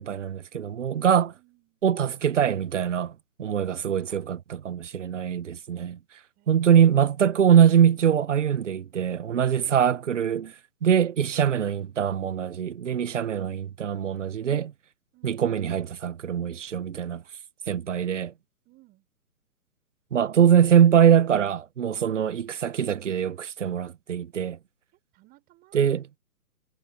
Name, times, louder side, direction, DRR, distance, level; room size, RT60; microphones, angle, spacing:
voice 1, 0.0-1.3 1.8-3.1 3.4-6.0 6.5-10.5 10.8-14.7 15.2-17.2 17.7-18.3 20.1-24.6 25.7-26.1, right 8 dB, 50° right, 1.2 m, -23 dB
voice 2, 1.3-1.8 4.0-4.2 6.4-7.2 15.1-15.5 18.6-19.0 25.1-25.8, right 20 dB, 20° right, 6.5 m, -60 dB
figure-of-eight pair, 135°, 46 cm